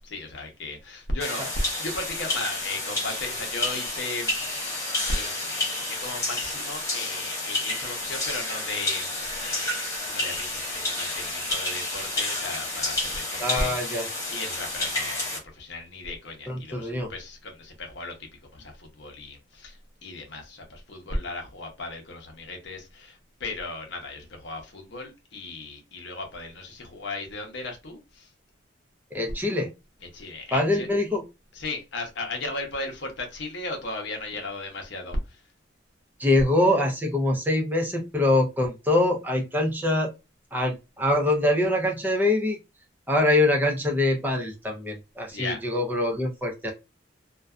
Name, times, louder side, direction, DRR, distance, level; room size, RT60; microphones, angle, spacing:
voice 1, 0.0-1.4 1.8-4.4 5.1-9.1 9.4-18.1 18.5-28.3 30.1-30.9 31.5-35.4 45.3-45.6, left 2 dB, 60° left, 0.7 m, -36 dB
sound 1, 1.2-15.4, left 2 dB, 15° left, 0.9 m, -30 dB
voice 2, 13.4-14.0 16.5-17.1 29.1-29.7 30.5-31.2 36.2-40.1 40.5-42.6 43.1-46.7, left 1 dB, 10° right, 0.5 m, -24 dB
2.5 x 2.2 x 2.3 m
head